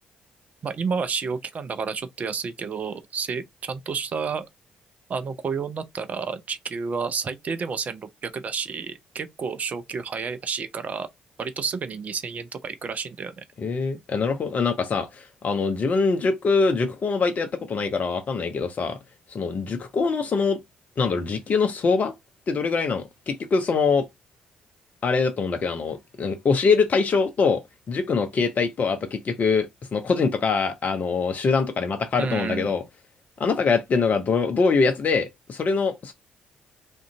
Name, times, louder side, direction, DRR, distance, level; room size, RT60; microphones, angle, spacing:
voice 1, 0.6-4.5 5.1-11.1 11.4-13.3 32.2-32.7, right 5 dB, 40° right, 0.3 m, -30 dB
voice 2, 13.6-19.0 19.3-20.6 21.0-22.1 22.5-24.1 25.0-27.6 27.9-32.8 33.4-36.1, left 4 dB, 40° left, 0.5 m, -23 dB
2.4 x 2.2 x 2.7 m
figure-of-eight pair, 45°, 4 cm